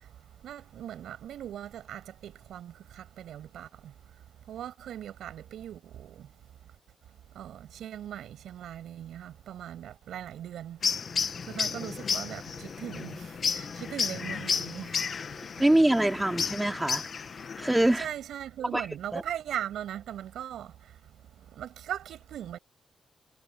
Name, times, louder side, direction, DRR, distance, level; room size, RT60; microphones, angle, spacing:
voice 1, 0.0-3.9 4.5-6.3 7.3-11.0 11.4-15.0 18.0-21.0 21.4-22.6, right 10 dB, 80° right, 7.5 m, -40 dB
sound 1, 10.8-18.0, left 6 dB, 60° left, 1.4 m, -32 dB
voice 2, 15.6-17.1 17.6-18.1 18.7-18.9 19.1-19.2, right 1 dB, 15° right, 3.9 m, -24 dB
supercardioid pair, 50°, 0 cm